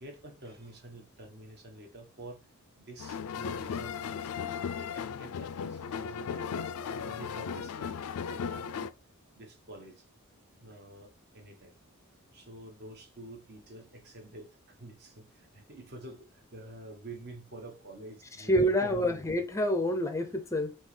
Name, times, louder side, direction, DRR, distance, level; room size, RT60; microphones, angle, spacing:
voice 1, 0.0-2.4 2.8-6.6 7.0-8.9 9.3-10.0 10.6-11.7 12.3-14.5 14.8-15.3 15.5-19.2, right 1 dB, 50° right, 1.1 m, -48 dB
sound 1, 3.0-8.9, left 6 dB, 75° left, 0.4 m, -36 dB
voice 2, 18.4-20.8, equal, 15° left, 0.5 m, -27 dB
5.3 x 2.8 x 3.2 m
head